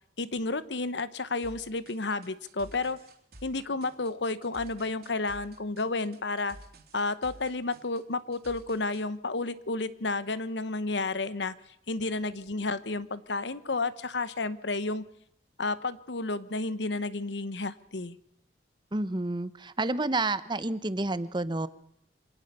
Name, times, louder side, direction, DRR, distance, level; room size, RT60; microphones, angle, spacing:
voice 1, 0.2-3.0 3.4-6.6 6.9-11.5 11.9-15.0 15.6-18.2, left 3 dB, 75° left, 15 dB, 1.1 m, -31 dB
sound 1, 1.4-9.1, right 1 dB, 60° right, 3.7 m, -51 dB
voice 2, 18.9-21.7, right 2 dB, 25° right, 14 dB, 0.9 m, -29 dB
25.5 x 18.5 x 6.8 m, 0.72 s
head